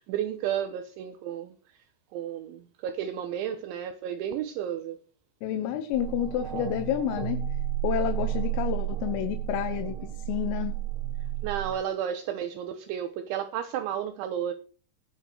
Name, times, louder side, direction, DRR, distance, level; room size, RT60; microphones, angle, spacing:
voice 1, 0.0-1.5 2.1-5.0 11.4-14.5, right 9 dB, 75° right, 3.1 m, -32 dB
voice 2, 5.4-7.4 7.8-10.8, left 11 dB, 85° left, 3.8 m, -30 dB
sound 1, 5.9-11.7, right 12 dB, 60° right, 3.4 m, -32 dB
19.0 x 7.1 x 4.9 m
omnidirectional pair, 5.8 m